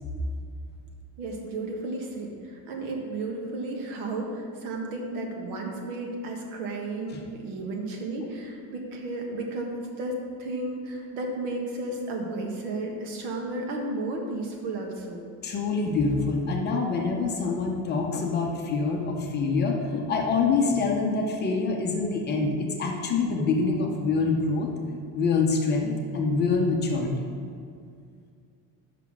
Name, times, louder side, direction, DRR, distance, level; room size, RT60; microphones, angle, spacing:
voice 1, 1.2-15.2, right 2 dB, 75° right, 1 dB, 1.5 m, -33 dB
voice 2, 15.4-24.7 25.1-27.3, left 4 dB, 25° left, 1 dB, 0.6 m, -25 dB
5.8 x 5.5 x 6.1 m, 2.3 s
cardioid pair, 175°, 41 cm